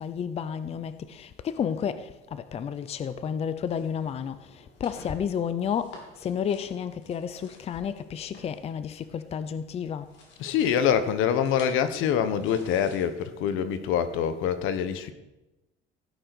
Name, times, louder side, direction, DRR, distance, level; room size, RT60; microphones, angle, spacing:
voice 1, 0.0-10.1, left 7 dB, 30° left, 0.6 m, -31 dB
sound 1, 1.7-2.3 2.7-3.0 3.5-9.6 9.8-13.6, left 3 dB, 60° left, 3.7 m, -52 dB
voice 2, 10.4-15.1, left 8 dB, 75° left, 1.3 m, -25 dB
16.0 x 9.6 x 6.2 m
cardioid pair, 155°, 21 cm